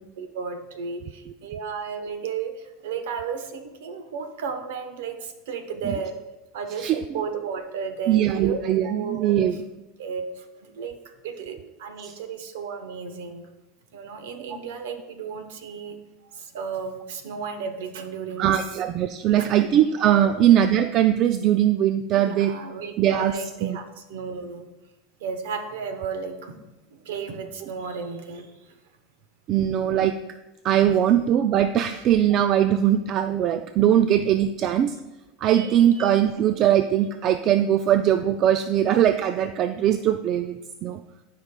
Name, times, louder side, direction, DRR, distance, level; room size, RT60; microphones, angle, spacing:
voice 1, 0.2-6.2 6.5-9.3 10.0-11.0 11.2-13.5 13.9-16.0 16.3-18.6 19.3-19.7 20.2-20.3 22.2-24.7 25.2-26.6 26.9-28.7 31.9-32.0 35.5-35.8, right 6 dB, 85° right, 7 dB, 0.9 m, -34 dB
voice 2, 8.1-9.6 12.0-12.1 18.4-22.6 23.0-23.3 23.6-23.8 29.5-30.2 30.6-35.0 35.4-41.0, right 10 dB, 45° right, 9 dB, 0.3 m, -21 dB
13.0 x 5.0 x 2.2 m, 1.0 s
supercardioid pair, 120°, 0 cm